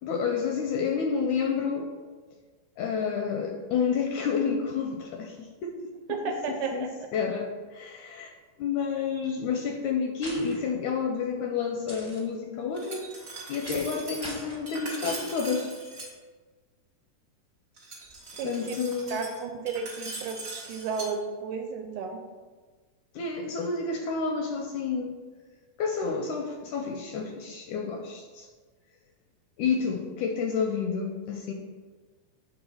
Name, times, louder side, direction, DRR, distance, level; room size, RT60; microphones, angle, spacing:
voice 1, 0.0-1.9 2.8-5.8 6.5-8.3 8.6-13.1 13.5-15.7 18.4-19.2 23.2-25.2 25.8-28.5 29.6-31.5, left 5 dB, 80° left, 3 dB, 1.8 m, -30 dB
voice 2, 6.1-7.1 18.4-18.8 19.1-22.2, right 5 dB, 80° right, 4 dB, 1.9 m, -33 dB
sound 1, 10.2-10.5 11.9-12.2 13.6-13.9 14.2-14.6 15.0-15.3, equal, 35° left, 0.3 m, -41 dB
Glass, 12.7-16.1 17.8-21.1, right 2 dB, 50° right, 0.7 m, -41 dB
7.0 x 3.9 x 5.5 m, 1.4 s
omnidirectional pair, 3.8 m